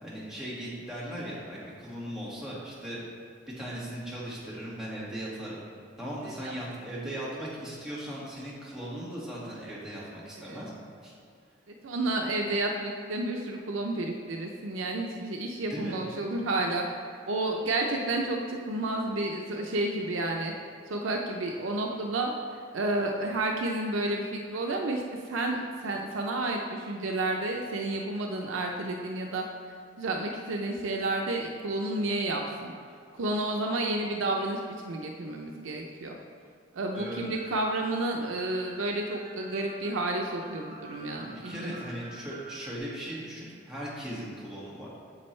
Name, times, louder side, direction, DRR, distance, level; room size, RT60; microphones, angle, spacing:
voice 1, 0.0-3.0 3.6-5.6 6.0-10.7 11.0-11.1 15.7-16.0 36.9-37.2 41.2-45.0, right 1 dB, 5° right, -8 dB, 1.9 m, -38 dB
voice 2, 11.7-16.8 17.3-20.5 20.9-29.4 30.0-32.7 33.1-36.2 36.7-41.7, right 2 dB, 90° right, 1 dB, 0.6 m, -31 dB
sound 1, 36.9-42.8, right 3 dB, 45° right, 0.9 m, -48 dB
8.7 x 6.9 x 3.2 m, 2.4 s
head